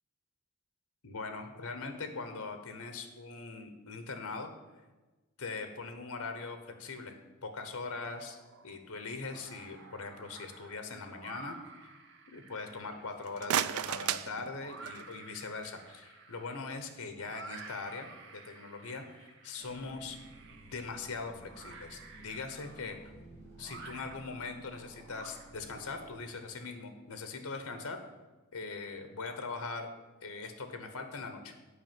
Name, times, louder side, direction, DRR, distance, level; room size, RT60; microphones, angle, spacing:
voice 1, 1.0-4.5 5.4-11.6 11.8-11.9 12.3-20.2 20.5-23.1 23.6-28.0 28.5-29.9 30.2-31.5, left 4 dB, 80° left, 7 dB, 1.1 m, -41 dB
sound 1, 8.1-8.8 9.1-25.9, right 4 dB, 55° right, 1.0 m, -52 dB
sound 2, 13.1-15.2, right 10 dB, 75° right, 0.4 m, -34 dB
sound 3, 19.6-26.2, right 1 dB, 10° left, 2.6 m, -55 dB
8.3 x 5.1 x 7.6 m, 1.2 s
head